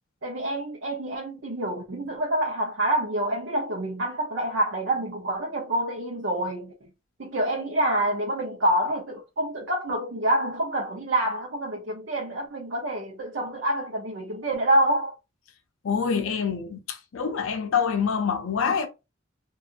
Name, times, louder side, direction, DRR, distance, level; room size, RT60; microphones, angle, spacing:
voice 1, 0.2-6.9 7.2-15.1, right 1 dB, 70° right, 0.7 m, -27 dB
voice 2, 15.8-18.9, left 6 dB, 85° left, 0.5 m, -26 dB
2.7 x 2.4 x 2.5 m
head